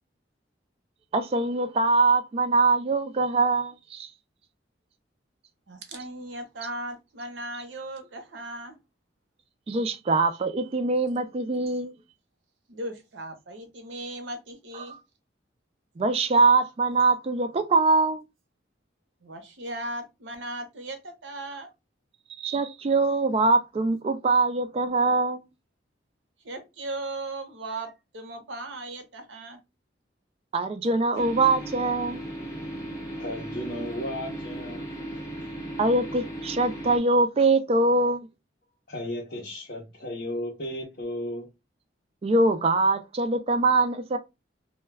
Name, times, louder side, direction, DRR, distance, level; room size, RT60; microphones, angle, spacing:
voice 1, 1.1-4.1 9.7-12.0 14.8-15.0 16.0-18.2 22.4-25.4 30.5-32.3 35.8-38.3 42.2-44.2, right 3 dB, 30° right, 0.3 m, -23 dB
voice 2, 5.7-8.8 12.7-14.9 19.2-21.7 26.4-29.6, right 2 dB, 75° right, 0.7 m, -37 dB
sound 1, 31.1-37.0, right 1 dB, 15° left, 0.6 m, -36 dB
voice 3, 33.2-34.8 38.9-41.5, left 1 dB, 55° left, 0.7 m, -34 dB
2.2 x 2.2 x 3.2 m
head